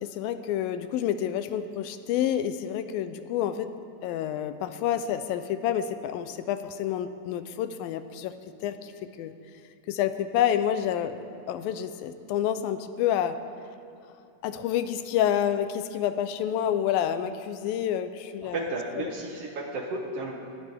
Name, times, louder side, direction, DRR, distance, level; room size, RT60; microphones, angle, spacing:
voice 1, 0.0-3.7 4.0-8.3 8.6-8.9 9.2-9.3 9.9-11.2 11.5-13.4 14.4-19.1, left 10 dB, 85° left, 11 dB, 2.4 m, -28 dB
voice 2, 18.4-20.4, right 2 dB, 65° right, 1 dB, 1.6 m, -33 dB
19.5 x 15.0 x 3.6 m, 2.7 s
omnidirectional pair, 4.2 m